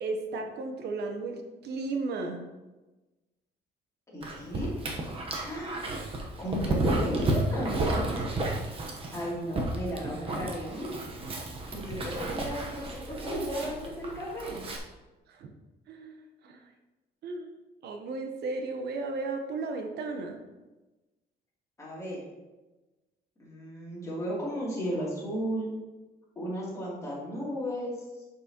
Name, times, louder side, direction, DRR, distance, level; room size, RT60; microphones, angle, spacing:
voice 1, 0.0-2.4 15.3-15.5 15.9-16.7 17.2-17.6 17.8-20.4, right 3 dB, 65° right, 4 dB, 0.9 m, -35 dB
voice 2, 4.1-4.8 5.4-5.9 6.4-7.7 9.1-10.9 11.7-14.6 21.8-22.2 23.4-25.7 26.4-27.9, equal, 15° left, -6 dB, 2.6 m, -34 dB
Dog, 4.2-14.8, right 2 dB, 30° right, 0.9 m, -32 dB
11.0 x 6.0 x 2.9 m, 1.1 s
cardioid pair, 180°, 18 cm